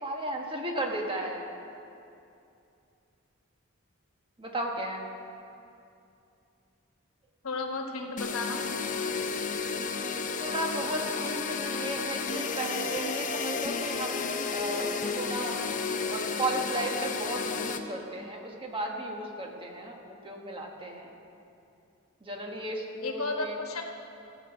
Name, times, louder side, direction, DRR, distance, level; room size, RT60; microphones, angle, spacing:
voice 1, 0.0-1.5 4.4-5.0 10.4-15.6 16.0-21.1 22.2-23.6, right 1 dB, 25° right, 1 dB, 1.3 m, -35 dB
voice 2, 7.4-8.6 23.0-23.8, left 3 dB, 90° left, 3 dB, 1.3 m, -33 dB
sound 1, 8.2-17.8, left 5 dB, 40° left, 0.6 m, -32 dB
15.0 x 5.3 x 8.1 m, 2.6 s
head